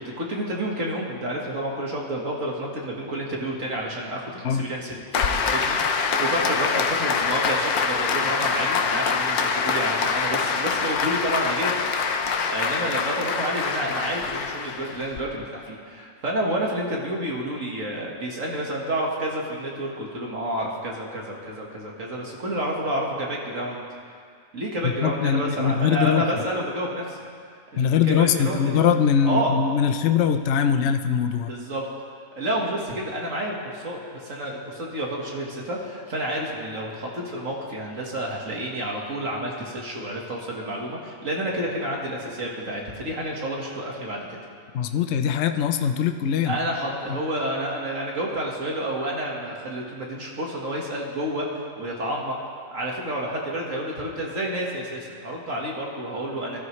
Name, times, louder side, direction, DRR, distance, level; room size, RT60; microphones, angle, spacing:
voice 1, 0.0-23.8 24.5-27.2 27.7-28.8 29.2-29.5 31.5-31.8 32.4-44.4 46.4-52.4 52.7-56.6, right 1 dB, 60° right, -2 dB, 2.0 m, -29 dB
Applause, 5.1-15.2, left 5 dB, 80° left, 1.3 m, -25 dB
voice 2, 24.8-26.3 27.8-31.5 44.7-46.6 47.1-47.2, left 7 dB, 60° left, 7 dB, 0.8 m, -22 dB
21.0 x 13.0 x 3.2 m, 2.2 s
omnidirectional pair, 1.6 m